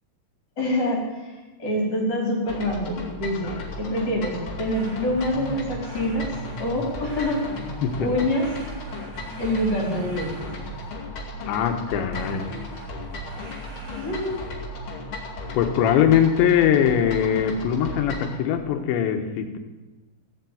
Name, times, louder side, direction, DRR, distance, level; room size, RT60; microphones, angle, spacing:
voice 1, 0.6-6.3 6.6-7.4 8.0-8.5 9.4-10.3 13.9-14.4, left 1 dB, 25° left, -2 dB, 4.7 m, -26 dB
sound 1, 2.5-18.3, left 1 dB, 40° left, 2.2 m, -36 dB
sound 2, 4.7-11.2 12.1-14.7, right 2 dB, 50° right, 4.1 m, -41 dB
voice 2, 11.5-12.5 15.5-19.6, left 9 dB, 75° left, 6 dB, 3.2 m, -21 dB
16.0 x 7.4 x 9.3 m, 1.2 s
omnidirectional pair, 5.5 m